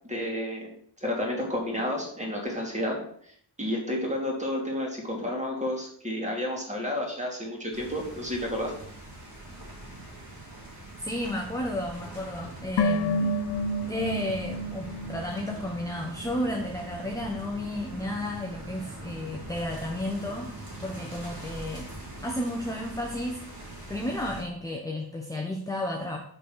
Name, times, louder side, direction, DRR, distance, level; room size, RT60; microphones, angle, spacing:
voice 1, 0.1-0.7 1.0-3.0 3.6-8.7, left 1 dB, 15° right, -1 dB, 2.4 m, -31 dB
sound 1, 7.7-24.4, right 2 dB, 55° right, 3.0 m, -42 dB
voice 2, 11.0-13.4 13.9-20.5 20.8-21.9 22.2-23.4 23.9-26.2, left 1 dB, 10° left, 1 dB, 0.9 m, -32 dB
sound 2, 12.8-16.1 16.3-16.4, left 1 dB, 90° left, 0.7 m, -29 dB
6.1 x 6.0 x 6.3 m, 0.64 s
wide cardioid pair, 145°, 42 cm